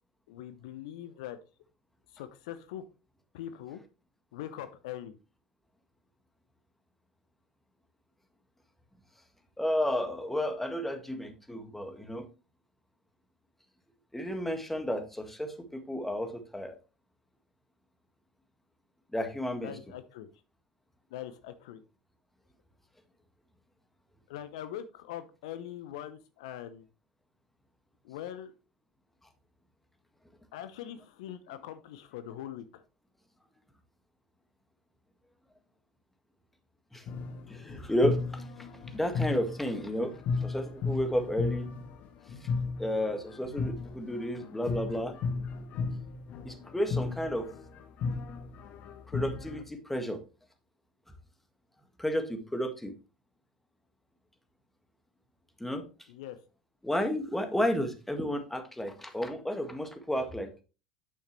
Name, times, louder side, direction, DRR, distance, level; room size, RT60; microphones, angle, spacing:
voice 1, 0.3-1.4 2.1-2.8 3.3-3.8 4.3-5.2 19.6-20.3 21.1-21.8 24.3-26.9 28.0-28.5 30.5-32.8 56.1-56.4, left 11 dB, 70° left, 11 dB, 0.7 m, -42 dB
voice 2, 9.6-12.2 14.1-16.7 19.1-19.7 36.9-37.0 37.5-38.4 38.9-40.1 40.4-41.7 42.8-45.1 46.4-47.5 49.1-50.2 52.0-52.9 55.6-55.8 56.8-60.5, equal, 5° left, 6 dB, 1.7 m, -32 dB
sound 1, 37.1-49.6, left 4 dB, 50° left, 1.2 m, -35 dB
9.3 x 6.5 x 3.1 m, 0.32 s
hypercardioid pair, 75°, 3 cm